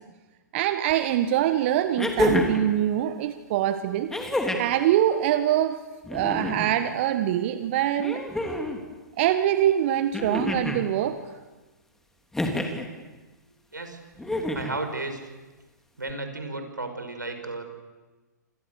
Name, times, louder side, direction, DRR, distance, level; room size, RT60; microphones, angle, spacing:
voice 1, 0.5-4.1 4.6-5.8 6.1-8.2 9.2-11.2, right 11 dB, 40° right, 10 dB, 1.3 m, -24 dB
sound 1, 0.9-1.0 2.0-2.7 4.1-4.8 6.0-6.8 8.0-8.8 10.1-10.8 12.3-12.9 14.2-14.8 16.1-16.2, left 1 dB, 5° left, 3.1 m, -27 dB
voice 2, 14.5-15.3 16.0-17.6, right 2 dB, 80° right, 6 dB, 5.7 m, -33 dB
29.0 x 27.5 x 7.0 m, 1.2 s
figure-of-eight pair, 115°, 10 cm